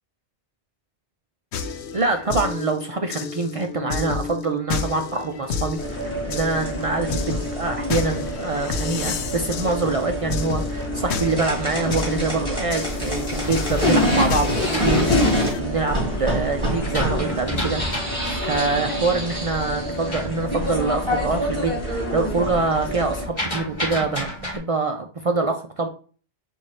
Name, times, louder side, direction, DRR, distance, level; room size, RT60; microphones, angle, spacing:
sound 1, 1.5-15.6, left 5 dB, 70° left, 0.9 m, -30 dB
voice 1, 1.9-17.8 18.2-25.9, right 3 dB, 65° right, 4 dB, 0.3 m, -25 dB
sound 2, 5.8-23.2, equal, 5° left, 2.5 m, -26 dB
sound 3, 12.4-16.0 16.5-21.3 21.6-22.1 22.3-24.6, equal, 25° left, 2.0 m, -33 dB
4.8 x 2.6 x 4.1 m, 0.40 s
omnidirectional pair, 1.2 m